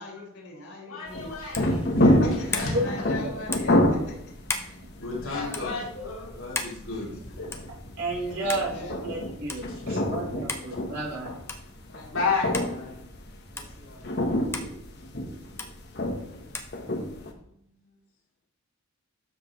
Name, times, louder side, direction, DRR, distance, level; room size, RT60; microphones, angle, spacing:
voice 1, 0.0-1.7 2.0-4.2 4.5-5.8 6.9-7.2 8.2-8.9 11.9-12.5 13.5-14.1, left 2 dB, 90° left, -3 dB, 4.1 m, -42 dB
voice 2, 0.9-2.1 5.0-7.5 9.9-10.0 12.1-13.0 16.3-16.6, left 4 dB, 70° left, -3 dB, 2.8 m, -32 dB
sound 1, 1.1-17.3, left 1 dB, 50° left, 1.2 m, -28 dB
sound 2, 1.5-1.8 2.5-2.7 3.5-3.8 4.5-4.7 5.5-5.7 6.6-6.8 7.5-7.7 8.5-8.7 9.5-9.6 10.5-10.7 11.5-11.7 12.5-12.7 13.6-13.7 14.5-14.7 15.6-15.7 16.5-16.7, left 3 dB, 10° left, 0.7 m, -33 dB
voice 3, 8.0-11.3, right 1 dB, 90° right, -3 dB, 3.8 m, -31 dB
12.5 x 6.3 x 3.2 m, 0.72 s
head